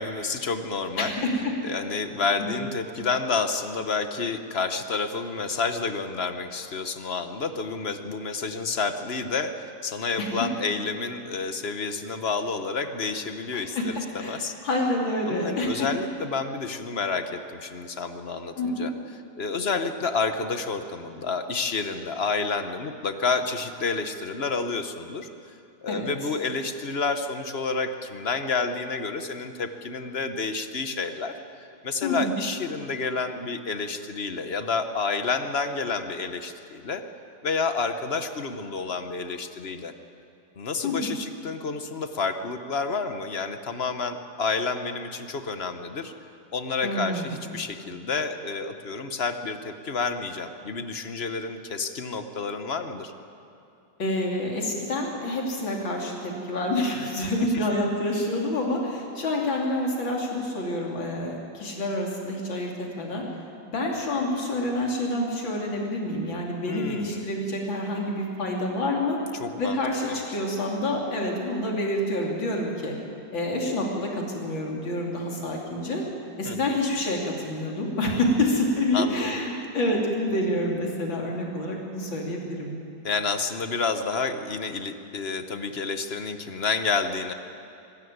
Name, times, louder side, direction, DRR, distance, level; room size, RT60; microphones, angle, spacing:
voice 1, 0.0-1.1 1.6-9.5 9.8-14.5 15.3-18.9 19.4-25.5 25.8-31.3 31.8-37.0 37.4-39.9 40.6-46.1 46.5-53.1 66.7-67.3 69.3-70.2 76.4-76.8 78.9-79.4 83.0-87.3, left 4 dB, 40° left, 8 dB, 1.0 m, -29 dB
voice 2, 1.0-1.5 2.4-2.6 10.2-10.3 13.5-15.9 18.6-18.9 25.9-26.0 32.0-32.4 40.8-41.1 46.8-47.4 54.0-63.2 63.7-69.2 69.6-73.0 73.3-76.0 76.4-82.7, left 1 dB, 85° left, 0 dB, 3.6 m, -28 dB
23.0 x 13.0 x 9.5 m, 2.6 s
omnidirectional pair, 2.1 m